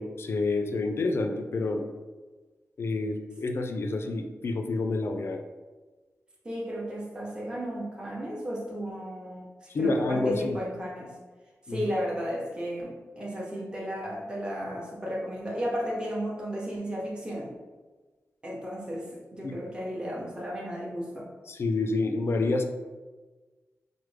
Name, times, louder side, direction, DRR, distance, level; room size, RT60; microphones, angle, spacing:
voice 1, 0.0-1.8 2.8-5.4 9.7-10.6 11.7-11.8 19.4-19.5 21.5-22.6, left 3 dB, 50° left, 5 dB, 0.3 m, -28 dB
voice 2, 6.4-11.1 11.7-17.5 18.4-21.3, equal, 15° right, -4 dB, 0.6 m, -34 dB
4.7 x 2.0 x 3.2 m, 1.3 s
wide cardioid pair, 175°, 6 cm